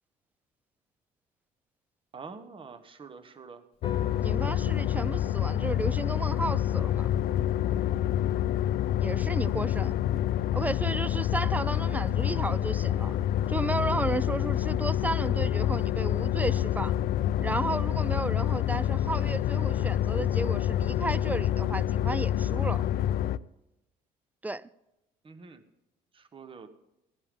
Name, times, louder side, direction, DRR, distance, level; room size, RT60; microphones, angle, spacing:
voice 1, 2.1-3.6 25.2-25.6 26.1-26.7, right 5 dB, 30° right, 1.1 m, -46 dB
Piano, 3.7-11.7, left 6 dB, 35° left, 1.3 m, -50 dB
sound 1, 3.8-23.4, left 11 dB, 60° left, 0.4 m, -27 dB
voice 2, 4.2-7.1 9.0-10.0 10.5-13.2 13.5-17.0 17.4-22.8 24.4-24.7, right 2 dB, 10° right, 0.3 m, -33 dB
16.0 x 11.0 x 3.7 m
cardioid pair, 110°, 17 cm